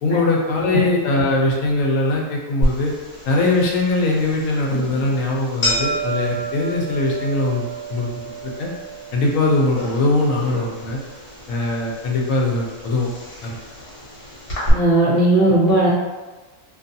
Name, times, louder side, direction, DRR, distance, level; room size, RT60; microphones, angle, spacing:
voice 1, 0.0-2.9 3.2-7.6 7.9-8.1 8.4-8.7 9.1-11.0 11.5-13.1 13.4-13.6, left 2 dB, 80° left, -2 dB, 1.0 m, -21 dB
sound 1, 2.6-14.7, right 1 dB, 60° left, 1.2 m, -30 dB
voice 2, 14.7-15.9, right 2 dB, 50° right, -7 dB, 0.7 m, -16 dB
2.6 x 2.3 x 2.6 m, 1.2 s
omnidirectional pair, 1.4 m